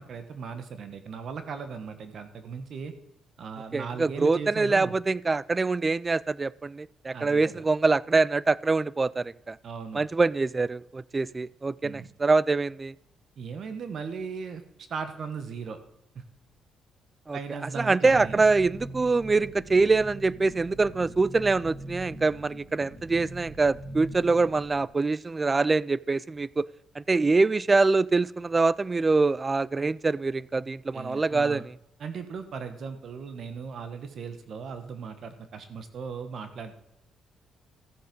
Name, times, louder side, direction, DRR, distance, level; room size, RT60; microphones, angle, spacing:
voice 1, 0.0-2.9 3.4-4.9 7.1-7.6 9.6-10.0 11.8-12.1 13.4-14.6 14.9-15.8 16.1-16.2 17.3-18.4 30.9-31.6 32.0-36.7, right 5 dB, 60° right, 9 dB, 1.5 m, -37 dB
voice 2, 3.7-9.6 9.9-12.9 17.3-17.4 17.8-26.7 27.0-31.6, right 3 dB, 25° right, 22 dB, 0.4 m, -24 dB
sound 1, 18.1-24.9, right 1 dB, 10° right, 4.1 m, -42 dB
14.0 x 7.6 x 5.4 m, 0.78 s
cardioid pair, 90°, 0 cm